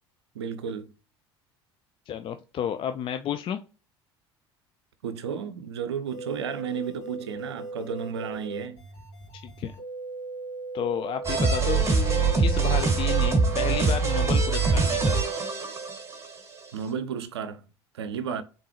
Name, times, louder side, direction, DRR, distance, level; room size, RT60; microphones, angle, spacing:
voice 1, 0.3-0.9 5.0-8.8 16.7-17.6 17.9-18.4, right 7 dB, 80° right, 0.5 m, -33 dB
voice 2, 2.1-3.6 9.3-9.7 10.7-15.2, left 9 dB, 40° left, 0.4 m, -32 dB
sound 1, 6.1-15.4, right 3 dB, 80° left, 2.0 m, -38 dB
sound 2, 11.2-16.4, right 4 dB, 20° right, 2.1 m, -23 dB
3.8 x 3.7 x 3.1 m
hypercardioid pair, 65°, 14 cm